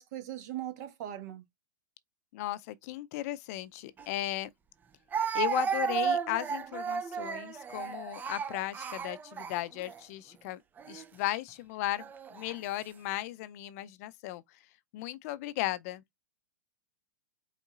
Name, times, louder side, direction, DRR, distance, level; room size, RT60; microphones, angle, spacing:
voice 1, 0.0-1.4, right 12 dB, 55° right, 1.4 m, -39 dB
voice 2, 2.3-4.5 5.3-10.6 10.9-14.6 14.9-16.0, left 16 dB, 50° left, 0.5 m, -36 dB
Speech, 4.0-4.1 5.1-10.0 10.8-11.0 12.0-12.6, right 7 dB, 15° right, 0.5 m, -33 dB
5.3 x 3.6 x 2.4 m
hypercardioid pair, 115°, 11 cm